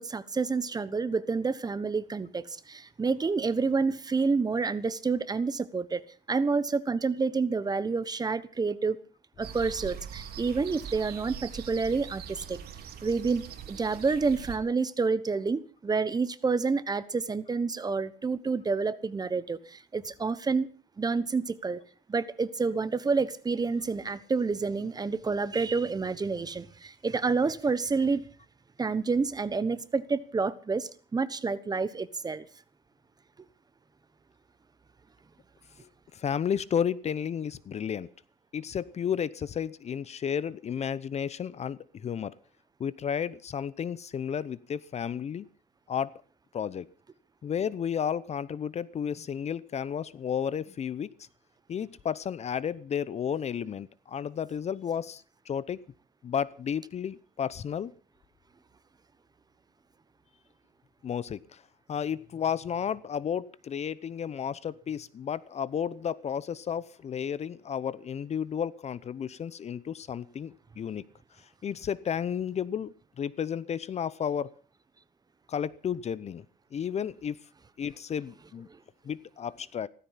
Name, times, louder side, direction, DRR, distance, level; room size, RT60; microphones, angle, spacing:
voice 1, 0.0-6.0 6.3-9.0 9.4-12.6 13.0-20.7 21.0-21.8 22.1-28.2 28.8-32.4, right 4 dB, 25° right, 15 dB, 1.2 m, -29 dB
sound 1, 9.4-14.6, right 8 dB, 65° right, 3.0 m, -42 dB
voice 2, 36.1-38.1 38.5-42.3 42.8-45.5 45.9-46.1 46.5-46.9 47.4-51.1 51.7-55.8 56.2-57.9 61.0-61.6 61.9-71.0 71.6-74.5 75.5-76.4 76.7-77.4 77.8-78.7 79.0-79.9, left 8 dB, 40° left, 19 dB, 0.8 m, -32 dB
16.5 x 14.5 x 5.8 m, 0.40 s
cardioid pair, 110°, 17 cm